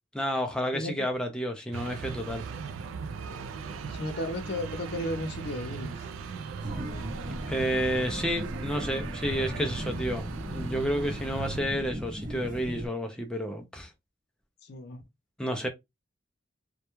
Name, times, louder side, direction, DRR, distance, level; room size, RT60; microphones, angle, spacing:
voice 1, 0.1-2.4 7.4-13.9 15.4-15.7, equal, 5° left, 0.3 m, -30 dB
sound 1, 1.7-11.6, right 5 dB, 85° right, 0.3 m, -39 dB
voice 2, 3.9-6.1 14.6-15.0, left 1 dB, 55° left, 0.6 m, -34 dB
sound 2, 6.6-12.9, equal, 45° right, 0.7 m, -37 dB
2.2 x 2.2 x 2.9 m
head